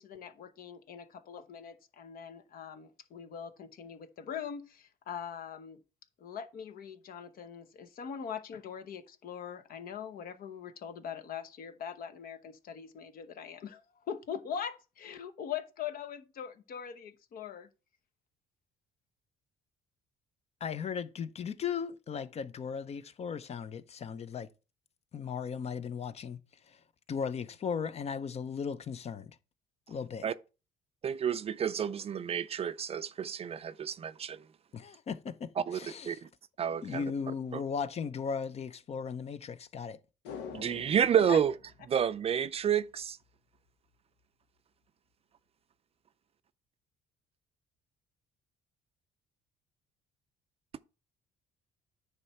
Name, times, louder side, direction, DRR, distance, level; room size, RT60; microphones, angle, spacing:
voice 1, 0.0-5.8 6.2-17.7 41.1-41.4, left 8 dB, 60° left, 0.9 m, -42 dB
voice 2, 20.6-24.5 25.1-26.4 26.7-26.8 27.1-29.3 29.9-30.3 34.7-36.2 36.8-40.0, left 6 dB, 40° left, 0.6 m, -37 dB
voice 3, 31.0-34.4 35.6-36.3 36.6-37.0 37.5-37.6 40.5-41.5 41.9-43.2, right 8 dB, 35° right, 0.4 m, -30 dB
sound 1, 40.2-42.7 43.0-43.1, left 6 dB, 85° left, 1.0 m, -47 dB
9.6 x 3.2 x 5.8 m
cardioid pair, 110°, 17 cm